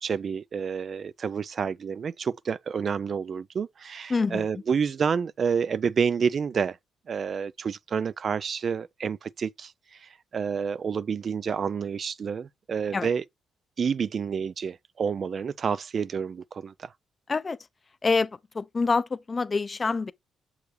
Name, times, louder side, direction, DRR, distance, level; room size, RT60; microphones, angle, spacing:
voice 1, 0.0-6.8 7.1-13.2 13.8-16.9, right 6 dB, 50° right, 0.3 m, -29 dB
voice 2, 4.1-4.5 12.9-13.1 17.3-17.6 18.0-20.1, left 4 dB, 30° left, 0.5 m, -26 dB
6.6 x 4.8 x 3.1 m
cardioid pair, 90°, 0 cm